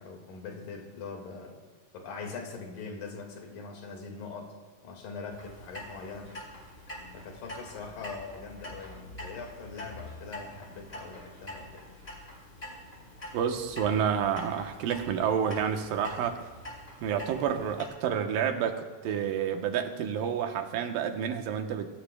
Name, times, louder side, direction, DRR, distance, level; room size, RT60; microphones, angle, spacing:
voice 1, 0.0-1.6 1.9-4.5 4.8-6.4 7.1-11.9, left 4 dB, 80° left, 2 dB, 3.7 m, -42 dB
Clock, 5.3-17.8, left 1 dB, 15° left, 3.9 m, -45 dB
voice 2, 13.3-16.4 17.0-21.9, right 8 dB, 90° right, 5 dB, 2.7 m, -29 dB
24.5 x 17.0 x 2.3 m, 1.4 s
omnidirectional pair, 3.9 m